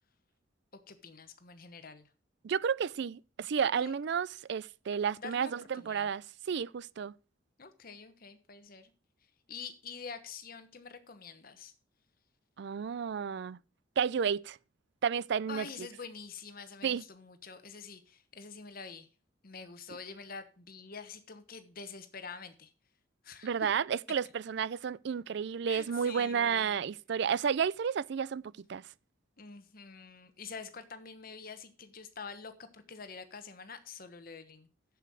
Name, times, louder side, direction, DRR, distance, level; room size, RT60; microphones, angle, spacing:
voice 1, 0.9-2.1 3.6-3.9 5.2-6.1 7.6-8.9 9.5-11.7 15.5-19.1 19.4-22.7 23.2-23.7 25.7-26.8 29.4-34.7, left 5 dB, 45° left, 1.1 m, -46 dB
voice 2, 2.4-7.1 12.6-13.6 14.0-14.6 15.0-15.9 16.8-17.0 23.4-28.9, right 7 dB, 60° right, 0.4 m, -32 dB
7.5 x 7.1 x 6.3 m
head